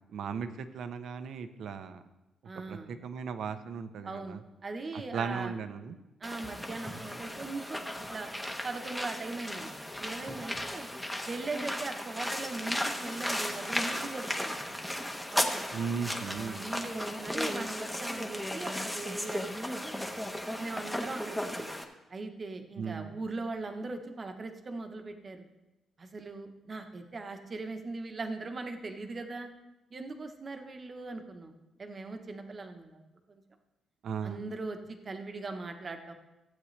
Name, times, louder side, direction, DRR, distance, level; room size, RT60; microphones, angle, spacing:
voice 1, 0.1-2.0 2.7-4.4 4.9-6.0 15.7-16.6 22.8-23.1 34.0-34.4, right 6 dB, 70° right, 10 dB, 0.8 m, -37 dB
voice 2, 2.4-2.9 4.0-5.6 6.2-8.3 8.6-10.9 11.2-14.6 15.3-15.6 16.3-19.6 19.8-20.1 20.4-21.7 22.1-25.5 26.0-29.5 29.9-31.5 31.8-33.0 33.3-33.4 34.2-36.1, right 3 dB, 30° right, 6 dB, 1.1 m, -40 dB
sound 1, 6.2-21.8, left 1 dB, 5° left, 1.0 m, -35 dB
15.5 x 8.6 x 3.3 m, 1.0 s
cardioid pair, 140°, 0 cm